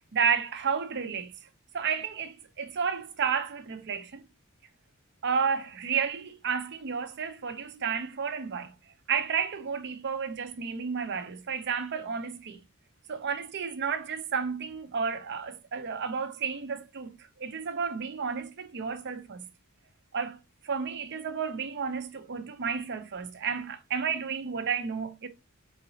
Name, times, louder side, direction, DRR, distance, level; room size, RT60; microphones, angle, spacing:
voice 1, 0.1-1.3 1.7-4.2 5.2-8.7 9.1-12.6 13.1-19.5 20.1-20.4 20.6-25.3, right 6 dB, 50° right, 0.6 m, -31 dB
4.0 x 3.8 x 2.7 m
head